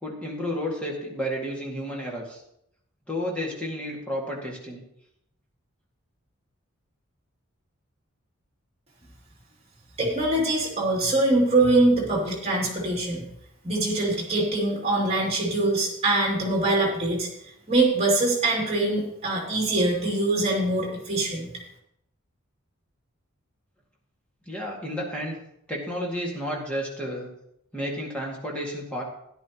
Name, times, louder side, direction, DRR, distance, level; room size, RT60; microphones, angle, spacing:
voice 1, 0.0-2.4 3.1-4.8 24.5-25.4 25.7-27.3 27.7-29.0, equal, 5° left, -3 dB, 2.1 m, -31 dB
voice 2, 10.0-13.2 13.6-17.3 17.7-21.6, right 2 dB, 30° right, -2 dB, 2.8 m, -23 dB
13.0 x 11.0 x 3.0 m, 0.76 s
head